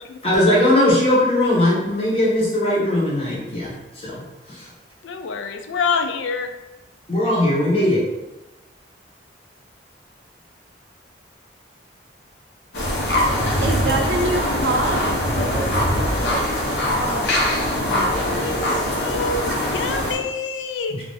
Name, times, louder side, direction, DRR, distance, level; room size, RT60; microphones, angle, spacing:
voice 1, 0.2-4.2 4.5-4.7 7.1-8.0 20.9-21.0, left 1 dB, 30° left, -6 dB, 1.1 m, -19 dB
voice 2, 5.0-6.5 18.1-21.0, left 5 dB, 80° left, 7 dB, 0.4 m, -27 dB
sound 1, 12.7-20.1, left 1 dB, 60° left, 0.9 m, -22 dB
voice 3, 13.6-15.3 17.0-18.5 19.4-19.6, right 2 dB, 65° right, 2 dB, 0.5 m, -27 dB
3.0 x 2.5 x 3.7 m, 1.0 s
head